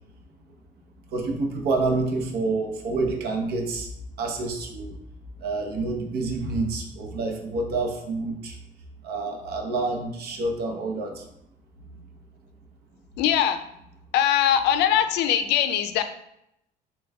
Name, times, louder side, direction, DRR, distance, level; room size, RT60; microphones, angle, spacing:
voice 1, 1.1-3.9 4.2-4.9 5.4-8.6 9.0-11.2, right 3 dB, 70° right, 3 dB, 0.8 m, -28 dB
voice 2, 13.2-13.6 14.1-16.0, left 10 dB, 85° left, 9 dB, 0.4 m, -21 dB
6.7 x 2.3 x 2.2 m, 0.78 s
cardioid pair, 110°, 17 cm